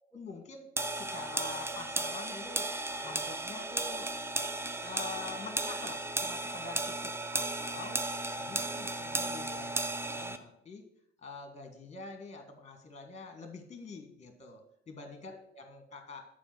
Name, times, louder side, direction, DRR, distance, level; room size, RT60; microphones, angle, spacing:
voice 1, 0.1-4.1 4.8-8.0 8.4-10.8 11.2-16.2, left 4 dB, 20° left, 6 dB, 1.4 m, -46 dB
sound 1, 0.8-10.4, right 2 dB, 5° right, 0.5 m, -35 dB
7.0 x 4.6 x 6.0 m, 0.73 s
figure-of-eight pair, 60°, 35 cm